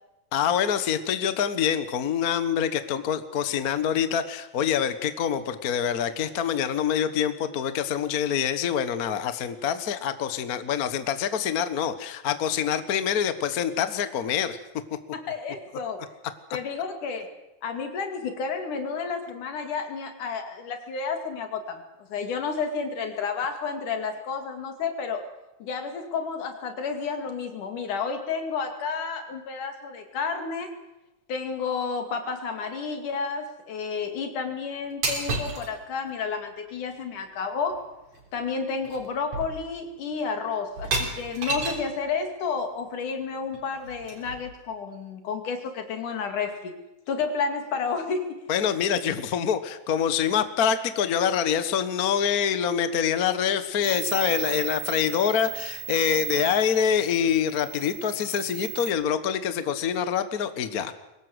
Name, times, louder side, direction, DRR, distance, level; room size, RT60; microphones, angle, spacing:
voice 1, 0.3-14.6 48.5-60.9, left 8 dB, 50° left, 11 dB, 1.0 m, -25 dB
voice 2, 15.1-16.0 16.5-17.3 17.6-25.2 25.6-30.7 31.3-37.8 38.3-46.7 47.1-48.4, left 5 dB, 80° left, 6 dB, 4.0 m, -31 dB
sound 1, 35.0-35.7 37.7-37.8 38.1-38.4 38.8-39.0 39.3-39.9 40.8-41.9 43.5-44.5, right 3 dB, 65° right, 4.9 m, -31 dB
sound 2, 53.8-58.9, right 16 dB, 15° right, 5.4 m, -36 dB
23.0 x 18.5 x 8.0 m, 0.97 s
omnidirectional pair, 3.5 m